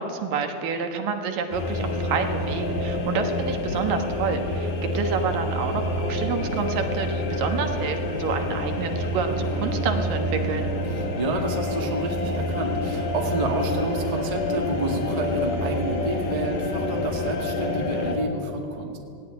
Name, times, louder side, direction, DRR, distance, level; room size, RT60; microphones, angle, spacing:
voice 1, 0.0-10.7, right 5 dB, 70° right, 6 dB, 3.0 m, -28 dB
sound 1, 1.5-18.2, left 1 dB, 65° left, 3.9 m, -27 dB
voice 2, 10.9-19.0, right 2 dB, 20° right, 2 dB, 1.2 m, -29 dB
18.0 x 17.5 x 9.9 m, 2.7 s
omnidirectional pair, 4.2 m